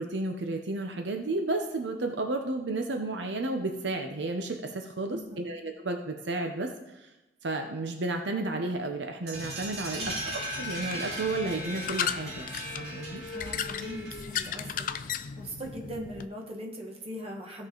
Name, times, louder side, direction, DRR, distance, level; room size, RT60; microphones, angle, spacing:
voice 1, 0.0-7.1 7.4-10.0 10.6-13.2, right 2 dB, 75° right, 4 dB, 0.8 m, -32 dB
voice 2, 5.1-5.4 10.0-10.1 13.3-17.7, equal, 35° right, 0 dB, 1.6 m, -40 dB
sound 1, 9.3-16.3, left 7 dB, 50° left, 0.4 m, -37 dB
sound 2, 9.3-14.8, right 1 dB, 60° right, 3.9 m, -38 dB
16.0 x 5.4 x 3.9 m, 1.0 s
head